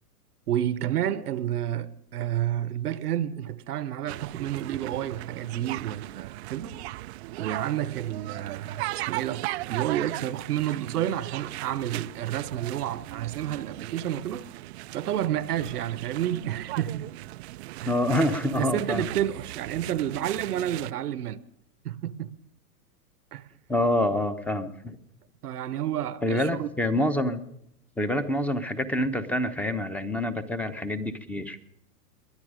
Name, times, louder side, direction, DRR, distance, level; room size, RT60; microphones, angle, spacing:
voice 1, 0.5-6.8 7.4-14.4 14.9-17.1 17.8-17.9 18.6-21.4 21.8-22.3 23.3-23.5 25.4-26.7, right 11 dB, 75° right, 1.0 m, -30 dB
sound 1, 4.1-20.9, right 18 dB, 45° right, 0.4 m, -38 dB
voice 2, 17.8-19.1 23.7-25.0 26.2-27.4 28.0-31.6, left 1 dB, 5° left, 1.1 m, -26 dB
21.5 x 10.5 x 5.1 m
hypercardioid pair, 115°, 47 cm